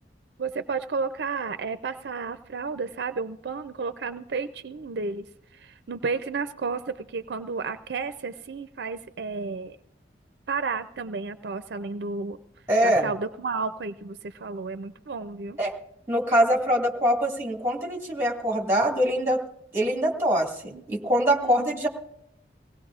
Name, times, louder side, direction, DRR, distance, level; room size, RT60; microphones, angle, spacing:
voice 1, 0.4-5.3 5.5-9.8 10.5-12.4 12.8-15.6 20.7-20.8 21.4-21.7, right 4 dB, 70° right, 10 dB, 0.5 m, -32 dB
voice 2, 12.7-13.1 15.6-15.7 16.1-19.4 19.7-21.9, equal, 15° right, 0 dB, 1.8 m, -23 dB
22.0 x 17.5 x 2.4 m, 0.80 s
head